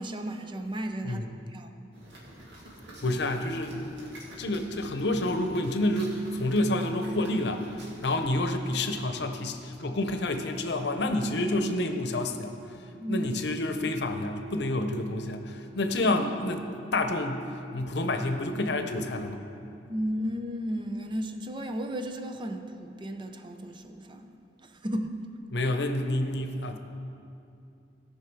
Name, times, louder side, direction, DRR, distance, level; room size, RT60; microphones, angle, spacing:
voice 1, 0.0-1.2 1.5-1.7 13.0-13.3 19.9-24.4 24.6-25.2, equal, 25° right, 6 dB, 0.6 m, -34 dB
sound 1, 1.9-8.3, right 1 dB, 75° right, 2.1 m, -48 dB
voice 2, 3.0-12.6 13.1-16.7 16.9-19.4 25.5-26.8, left 1 dB, 70° left, 6 dB, 0.8 m, -29 dB
17.0 x 5.8 x 4.6 m, 2.6 s
head